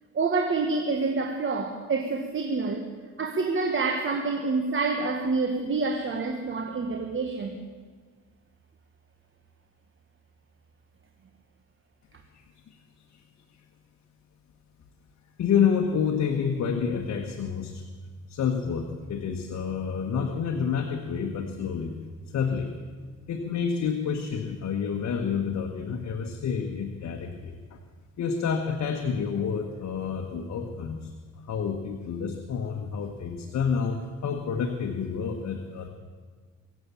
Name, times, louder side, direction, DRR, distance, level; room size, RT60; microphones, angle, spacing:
voice 1, 0.1-2.9 3.2-7.6, right 3 dB, 40° right, 4 dB, 1.6 m, -27 dB
voice 2, 15.4-17.8 18.3-22.0 22.3-22.7 23.3-27.8 28.2-31.1 31.5-35.9, left 6 dB, 65° left, 3 dB, 1.5 m, -29 dB
24.0 x 8.5 x 7.1 m, 1.5 s
cardioid pair, 90°, 30 cm